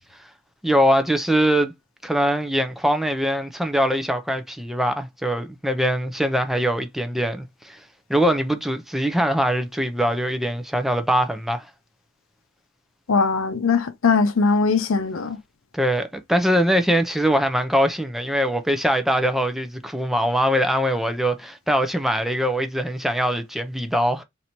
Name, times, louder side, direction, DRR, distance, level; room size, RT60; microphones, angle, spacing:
voice 1, 0.6-1.7 2.0-7.8 8.1-11.7 15.7-24.2, equal, ahead, 0.4 m, -22 dB
voice 2, 13.1-15.4, left 4 dB, 75° left, 0.5 m, -20 dB
2.9 x 2.6 x 4.2 m
head